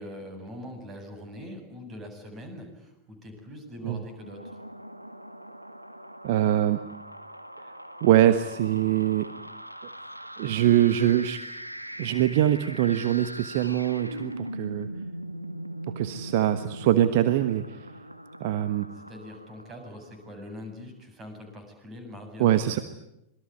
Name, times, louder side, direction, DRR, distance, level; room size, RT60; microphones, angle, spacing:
voice 1, 0.0-4.6 19.1-22.6, left 1 dB, 25° right, 6 dB, 7.8 m, -42 dB
sound 1, 4.1-20.4, right 1 dB, 90° right, 1.8 m, -41 dB
voice 2, 6.2-6.8 8.0-9.3 10.4-11.4 12.0-14.9 15.9-17.9 18.4-18.9 22.4-22.8, right 12 dB, 50° right, 11 dB, 1.3 m, -23 dB
27.0 x 21.5 x 9.6 m, 0.86 s
figure-of-eight pair, 90°, 0 cm